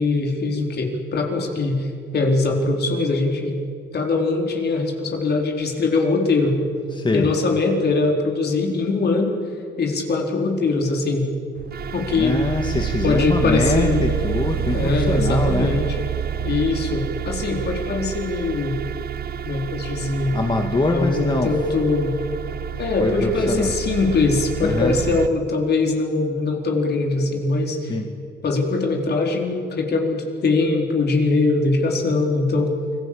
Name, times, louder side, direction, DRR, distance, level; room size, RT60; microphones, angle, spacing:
voice 1, 0.0-1.9 2.1-3.6 3.9-6.6 7.1-9.4 9.8-11.3 11.9-12.4 13.0-14.1 14.7-16.0 16.4-18.8 19.4-20.4 20.9-22.2 22.7-27.9 28.4-32.7, left 3 dB, 55° left, 2 dB, 4.4 m, -22 dB
voice 2, 6.9-7.3 12.2-15.7 20.3-21.5 23.0-23.7 24.6-25.0 27.9-28.1, left 2 dB, 25° left, 3 dB, 2.1 m, -23 dB
sound 1, 11.6-25.3, right 10 dB, 50° right, 0.9 m, -28 dB
29.0 x 20.5 x 8.8 m, 2.3 s
cardioid pair, 90°, 20 cm